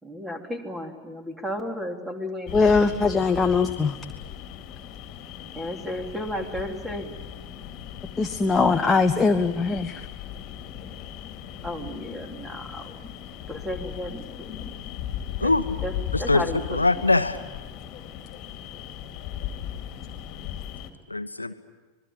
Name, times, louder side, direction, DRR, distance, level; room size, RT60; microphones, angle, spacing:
voice 1, 0.0-2.5 5.5-7.1 11.6-13.0 13.5-14.7 15.4-15.5 15.8-15.9 16.2-16.6 16.9-17.0, left 1 dB, 10° right, 4 dB, 3.3 m, -33 dB
sound 1, 2.5-20.9, left 10 dB, 35° left, 2.4 m, -37 dB
voice 2, 2.5-4.0 8.2-10.0, left 4 dB, 15° left, 6 dB, 1.1 m, -21 dB
voice 3, 16.7-17.4 21.1-21.5, left 2 dB, 85° left, 9 dB, 1.2 m, -22 dB
26.0 x 21.0 x 8.8 m, 1.2 s
figure-of-eight pair, 90°, 0 cm